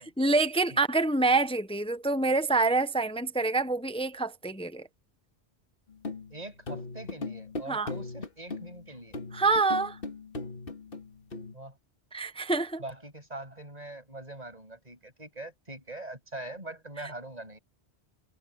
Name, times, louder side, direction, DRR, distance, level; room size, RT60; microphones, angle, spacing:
voice 1, 0.0-4.9 7.7-7.9 9.3-10.0 12.1-12.8, right 3 dB, 5° left, 0.6 m, -26 dB
sound 1, 5.9-11.6, left 3 dB, 60° left, 2.0 m, -39 dB
voice 2, 6.3-9.2 11.5-11.8 12.8-17.6, right 2 dB, 40° right, 7.4 m, -43 dB
omnidirectional pair, 1.1 m